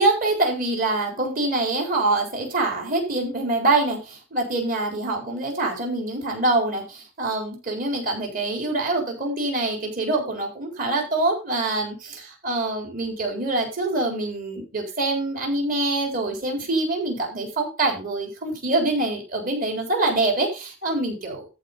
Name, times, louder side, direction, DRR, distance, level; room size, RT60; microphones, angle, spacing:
voice 1, 0.0-21.5, right 2 dB, 45° right, 1 dB, 4.1 m, -25 dB
13.5 x 4.8 x 5.5 m, 0.31 s
head